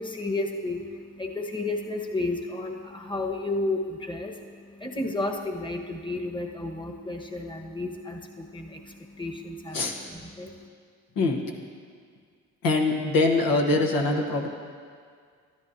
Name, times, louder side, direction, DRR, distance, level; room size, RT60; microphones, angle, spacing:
voice 1, 0.0-9.8 10.1-10.6, left 2 dB, 15° left, 2 dB, 1.2 m, -32 dB
voice 2, 12.6-14.5, left 3 dB, 75° left, 2 dB, 1.3 m, -23 dB
13.0 x 10.5 x 2.7 m, 2.1 s
supercardioid pair, 50°, 35 cm